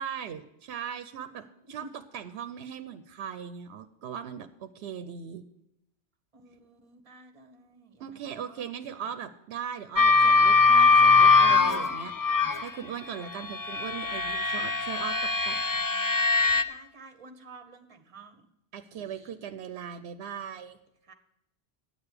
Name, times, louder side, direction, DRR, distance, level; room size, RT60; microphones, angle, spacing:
voice 1, 0.0-1.4 1.7-5.4 8.0-12.1 12.6-15.6 18.7-20.8, right 8 dB, 80° right, 11 dB, 0.9 m, -39 dB
voice 2, 1.3-1.9 6.3-8.8 13.1-13.4 16.4-18.4 18.9-19.3 21.1-21.2, right 3 dB, 35° right, 8 dB, 1.0 m, -51 dB
sound 1, 10.0-12.7 13.4-16.6, left 4 dB, 35° left, 0.3 m, -21 dB
9.2 x 6.8 x 8.0 m, 0.84 s
omnidirectional pair, 1.1 m